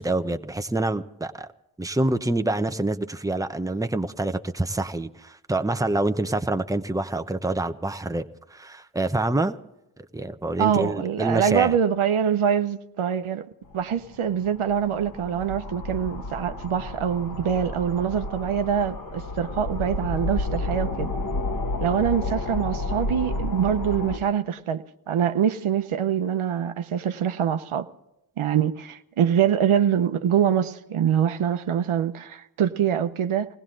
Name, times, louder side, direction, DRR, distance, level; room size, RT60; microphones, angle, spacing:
voice 1, 0.0-1.5 1.8-8.2 8.5-9.6 10.1-11.8, right 2 dB, 5° right, 0.9 m, -26 dB
voice 2, 10.6-13.5 13.7-21.1 21.8-27.9 28.4-33.5, right 8 dB, 75° right, 0.8 m, -24 dB
sound 1, 13.7-24.2, left 2 dB, 40° left, 1.5 m, -31 dB
20.0 x 16.5 x 3.9 m
cardioid pair, 40°, 50 cm